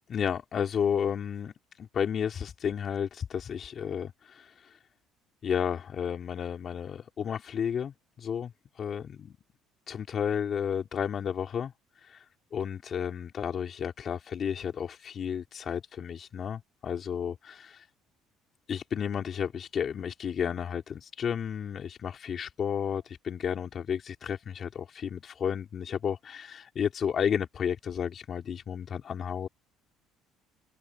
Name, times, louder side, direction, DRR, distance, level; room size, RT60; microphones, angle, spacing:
voice 1, 0.1-4.8 5.4-9.4 9.9-11.7 12.0-12.2 12.5-17.9 18.7-29.5, left 8 dB, 45° left, 4.0 m, -32 dB
cardioid pair, 105°, 0 cm